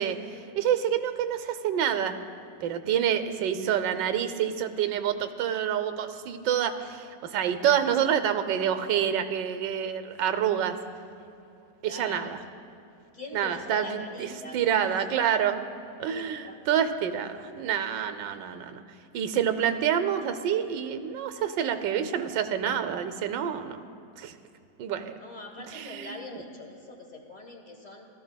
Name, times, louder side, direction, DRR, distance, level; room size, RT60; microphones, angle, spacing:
voice 1, 0.0-2.2 2.6-10.8 11.8-12.4 13.3-15.6 16.0-18.8 19.1-23.8 24.2-24.3 24.8-25.2 25.7-26.2, right 9 dB, 90° right, 10 dB, 1.3 m, -27 dB
voice 2, 11.8-12.4 13.1-15.3 16.0-16.6 25.2-28.1, left 2 dB, 35° left, 2 dB, 0.8 m, -43 dB
17.5 x 13.5 x 2.2 m, 2.6 s
omnidirectional pair, 1.9 m